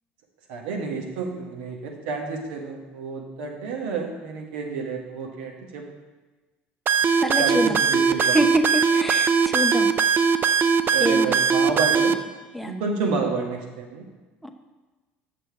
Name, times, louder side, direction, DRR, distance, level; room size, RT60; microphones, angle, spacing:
voice 1, 0.5-5.9 7.4-8.4 10.9-12.2 12.6-14.1, right 4 dB, 80° right, 1 dB, 1.4 m, -29 dB
sound 1, 6.9-12.1, right 6 dB, 40° right, 0.5 m, -20 dB
voice 2, 7.2-7.8 8.3-9.9 11.0-11.3 12.5-12.7 14.4-14.5, equal, ahead, 3 dB, 0.9 m, -26 dB
6.7 x 6.6 x 4.6 m, 1.2 s
hypercardioid pair, 70°, 5 cm